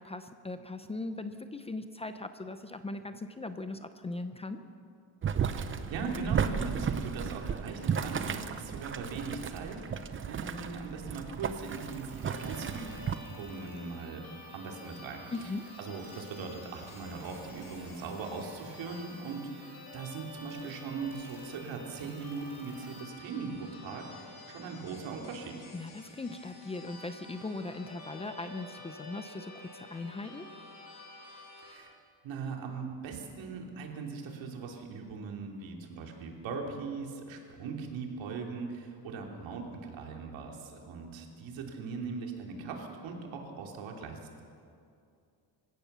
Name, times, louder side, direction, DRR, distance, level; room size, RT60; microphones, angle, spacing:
voice 1, 0.0-4.6 15.3-15.7 25.7-30.5, left 2 dB, 15° left, 9 dB, 0.5 m, -39 dB
Boiling, 5.2-13.2, right 7 dB, 30° right, 0.7 m, -34 dB
voice 2, 5.5-12.9 13.3-14.2 14.5-15.5 15.8-25.6 31.6-31.9 32.2-44.4, right 4 dB, 85° right, 1 dB, 3.4 m, -40 dB
sound 1, 11.4-23.0, right 3 dB, 5° right, 6.4 m, -56 dB
sound 2, 12.2-31.7, left 2 dB, 50° left, 4.3 m, -50 dB
25.5 x 16.0 x 6.9 m, 2.4 s
cardioid pair, 180°, 44 cm